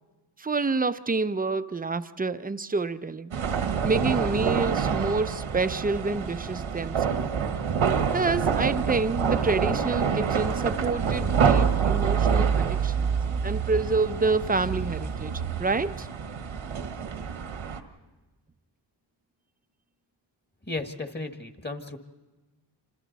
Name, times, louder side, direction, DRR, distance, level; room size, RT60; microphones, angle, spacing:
voice 1, 0.4-3.3 3.8-7.3 8.1-16.1, right 3 dB, 20° right, 0.6 m, -28 dB
sound 1, 3.3-17.8, right 6 dB, 80° right, 1.4 m, -26 dB
voice 2, 20.6-22.0, left 2 dB, 20° left, 1.7 m, -34 dB
27.5 x 26.5 x 4.1 m
cardioid pair, 60°, 48 cm